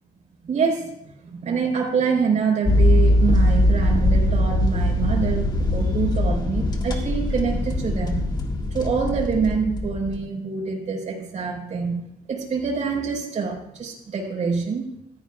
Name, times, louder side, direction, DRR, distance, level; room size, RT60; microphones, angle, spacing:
voice 1, 0.4-0.9 1.2-8.2 8.7-12.0 12.3-14.8, right 5 dB, 45° right, -1 dB, 4.5 m, -25 dB
sound 1, 2.7-10.2, left 1 dB, 25° left, 1.7 m, -21 dB
16.0 x 14.0 x 2.4 m, 0.80 s
cardioid pair, 110°, 17 cm